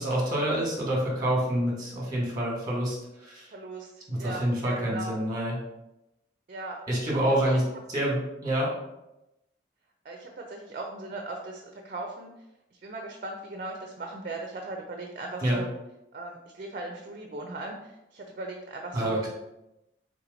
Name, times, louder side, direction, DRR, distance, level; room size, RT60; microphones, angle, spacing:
voice 1, 0.0-3.5 4.1-5.6 6.9-7.6 7.9-8.7 15.4-15.6 18.9-19.3, right 1 dB, 20° right, -3 dB, 1.2 m, -27 dB
voice 2, 3.5-3.9 4.2-5.1 6.5-6.8 7.5-7.6 10.0-12.3 12.8-15.7 16.1-19.2, right 2 dB, 45° right, 2 dB, 0.4 m, -38 dB
3.6 x 2.9 x 3.8 m, 0.91 s
head